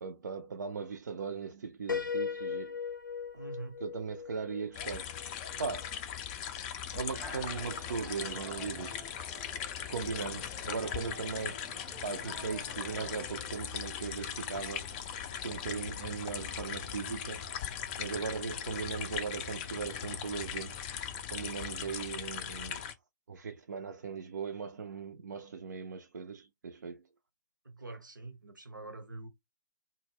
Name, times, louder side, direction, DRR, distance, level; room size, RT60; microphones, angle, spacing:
voice 1, 0.0-2.8 3.8-5.1 5.6-5.9 6.9-9.1 9.9-11.7 12.0-14.9 15.3-17.5 18.0-20.8 21.3-22.9 23.3-27.0, right 5 dB, 70° right, 0.4 m, -38 dB
Piano, 1.9-5.6, left 6 dB, 85° left, 0.4 m, -38 dB
voice 2, 3.3-3.8 10.1-10.4 18.7-18.8 27.6-29.3, right 2 dB, 85° right, 0.7 m, -45 dB
sound 1, 4.7-22.9, left 9 dB, 30° left, 0.3 m, -39 dB
sound 2, 7.1-13.3, left 2 dB, ahead, 0.7 m, -49 dB
2.1 x 2.0 x 3.3 m
figure-of-eight pair, 130°, 10 cm